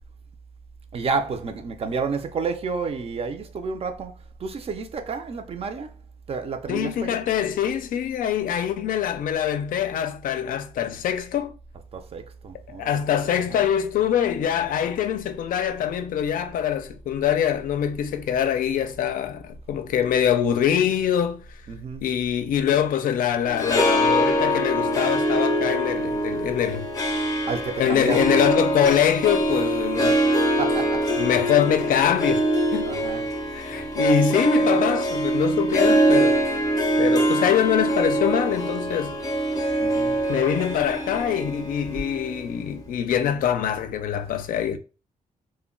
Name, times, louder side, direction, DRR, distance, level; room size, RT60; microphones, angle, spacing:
voice 1, 0.9-4.1 4.4-5.9 6.3-7.2 11.9-12.9 13.5-13.6 21.7-22.1 27.5-28.4 30.6-31.0 32.8-33.3 39.8-40.2, right 4 dB, 45° right, 0.4 m, -30 dB
voice 2, 6.7-11.5 12.8-21.4 22.0-26.9 27.8-30.2 31.2-32.9 33.5-36.5 37.0-39.2 40.3-44.8, left 9 dB, 85° left, 0.4 m, -24 dB
Harp, 23.4-42.8, right 1 dB, 25° left, 0.6 m, -23 dB
2.2 x 2.1 x 3.7 m
cardioid pair, 110°, 14 cm